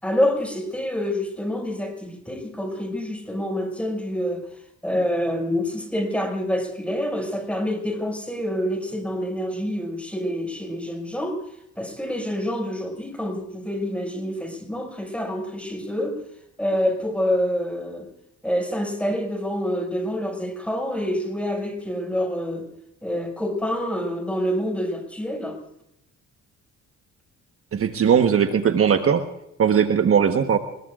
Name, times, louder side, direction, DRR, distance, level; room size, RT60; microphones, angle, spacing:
voice 1, 0.0-4.4 4.8-11.4 11.8-16.2 16.6-18.1 18.4-22.7 23.0-25.6, equal, 5° left, 4 dB, 5.8 m, -27 dB
voice 2, 27.7-29.3 29.6-30.6, right 7 dB, 50° right, 6 dB, 1.3 m, -19 dB
24.5 x 22.0 x 2.5 m, 0.83 s
cardioid pair, 90°, 30 cm